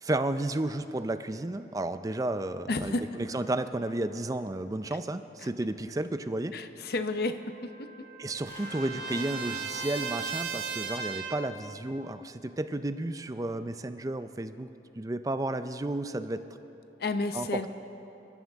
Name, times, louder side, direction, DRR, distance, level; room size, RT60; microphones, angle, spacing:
voice 1, 0.0-6.5 8.2-14.7 15.0-16.4 17.3-17.7, right 2 dB, 20° right, 10 dB, 0.4 m, -32 dB
voice 2, 2.7-3.0 6.5-7.9 17.0-17.7, left 2 dB, 55° left, 9 dB, 0.7 m, -31 dB
Trumpet, 7.2-11.6, right 5 dB, 60° right, 1.5 m, -37 dB
sound 1, 8.5-12.3, equal, 30° left, 4.2 m, -50 dB
26.0 x 13.0 x 3.6 m, 3.0 s
head